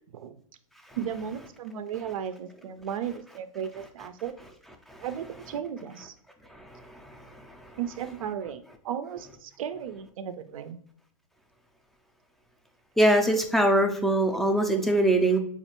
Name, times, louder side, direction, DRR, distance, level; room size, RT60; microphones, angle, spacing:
voice 1, 0.9-4.3 5.0-6.1 7.8-10.8, right 8 dB, 75° right, 10 dB, 0.4 m, -35 dB
voice 2, 6.5-7.3 7.6-7.7 13.0-15.4, right 1 dB, ahead, 3 dB, 0.3 m, -23 dB
4.3 x 2.4 x 2.8 m, 0.64 s
hypercardioid pair, 130°, 18 cm